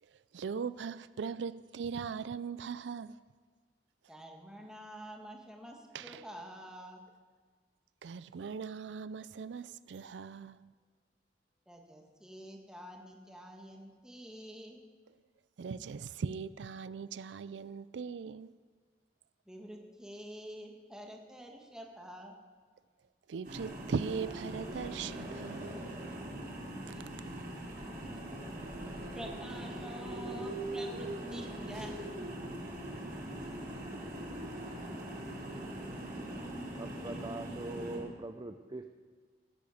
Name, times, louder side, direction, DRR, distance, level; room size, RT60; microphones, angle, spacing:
voice 1, 0.0-3.2 5.9-6.2 8.0-10.7 15.1-15.2 15.6-18.5 23.3-25.7, right 6 dB, 90° right, 0.4 m, -39 dB
voice 2, 4.1-7.0 11.7-14.8 19.5-22.4 26.8-27.0 28.8-31.9, equal, 5° right, 1.8 m, -48 dB
sound 1, 23.4-38.0, right 1 dB, 55° right, 5.0 m, -41 dB
voice 3, 36.8-39.0, right 2 dB, 25° right, 0.6 m, -42 dB
15.5 x 9.0 x 7.1 m
head